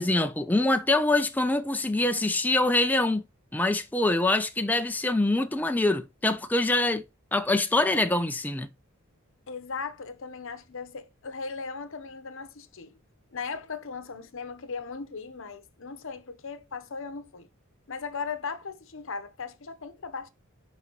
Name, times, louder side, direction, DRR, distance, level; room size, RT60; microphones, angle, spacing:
voice 1, 0.0-3.2 3.5-7.0 7.3-8.7, left 2 dB, 10° left, 0.4 m, -24 dB
voice 2, 9.5-13.0 13.3-17.5 17.9-20.3, left 5 dB, 65° left, 0.8 m, -37 dB
11.0 x 4.0 x 3.0 m
head